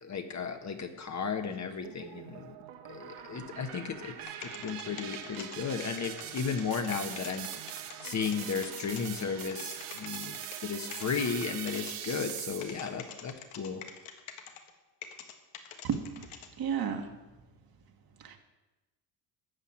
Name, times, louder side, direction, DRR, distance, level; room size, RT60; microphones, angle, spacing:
voice 1, 0.0-2.4 2.9-4.1 4.6-7.5 8.0-10.3 10.6-13.8, left 6 dB, 35° left, 6 dB, 1.2 m, -34 dB
sound 1, 1.8-13.0, right 10 dB, 75° right, 1.4 m, -42 dB
sound 2, 4.2-9.1 9.4-10.6 10.9-14.7 15.0-16.5, left 9 dB, 90° left, 1.6 m, -45 dB
voice 2, 15.8-16.3 16.6-17.1 18.2-18.4, right 7 dB, 45° right, 4 dB, 1.7 m, -33 dB
13.0 x 5.8 x 8.8 m, 1.1 s
cardioid pair, 110°, 50 cm